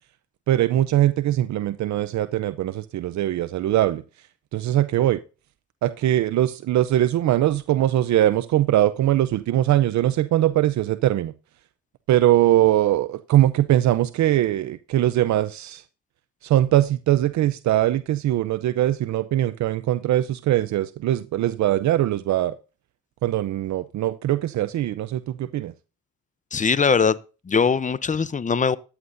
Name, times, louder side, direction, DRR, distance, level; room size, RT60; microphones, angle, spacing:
voice 1, 0.5-4.0 4.5-5.2 5.8-11.3 12.1-15.8 16.4-22.6 23.2-25.7, right 13 dB, 65° right, 0.6 m, -21 dB
voice 2, 26.5-27.2 27.5-28.8, left 5 dB, 25° left, 0.6 m, -21 dB
14.0 x 9.6 x 2.6 m
cardioid pair, 90°, 30 cm